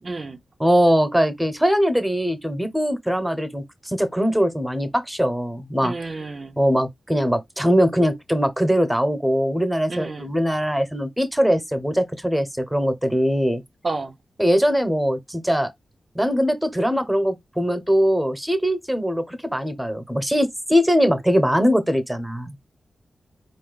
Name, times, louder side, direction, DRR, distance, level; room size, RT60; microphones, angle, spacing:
voice 1, 0.0-0.4 5.8-6.5 9.9-10.3 13.8-14.2, right 3 dB, 45° right, 0.6 m, -30 dB
voice 2, 0.6-5.9 6.6-13.6 14.4-15.7 16.1-22.5, equal, 5° right, 1.1 m, -21 dB
4.4 x 2.6 x 3.9 m
cardioid pair, 80°, 0 cm